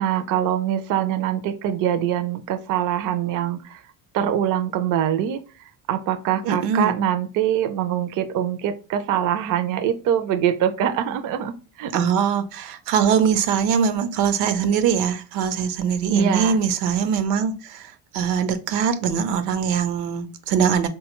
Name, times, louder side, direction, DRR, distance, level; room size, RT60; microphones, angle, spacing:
voice 1, 0.0-3.8 4.1-11.9 16.1-16.6, right 10 dB, 45° right, 0.5 m, -24 dB
voice 2, 6.4-6.9 11.9-20.9, right 7 dB, 80° right, 0.7 m, -22 dB
3.7 x 2.3 x 2.9 m
supercardioid pair, 95°, 48 cm